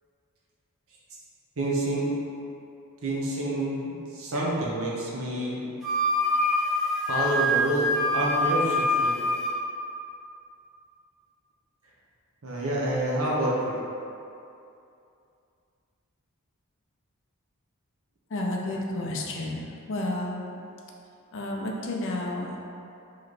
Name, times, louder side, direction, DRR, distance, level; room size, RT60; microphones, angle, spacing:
voice 1, 1.6-2.1 3.0-5.6 7.1-9.2 12.4-13.7, right 1 dB, 65° right, -4 dB, 0.8 m, -28 dB
Wind instrument woodwind instrument, 5.8-9.6, left 1 dB, ahead, 0.7 m, -25 dB
voice 2, 18.3-19.6 19.9-20.5 21.3-22.5, left 1 dB, 55° left, -1 dB, 0.5 m, -31 dB
3.2 x 3.1 x 4.0 m, 2.6 s
head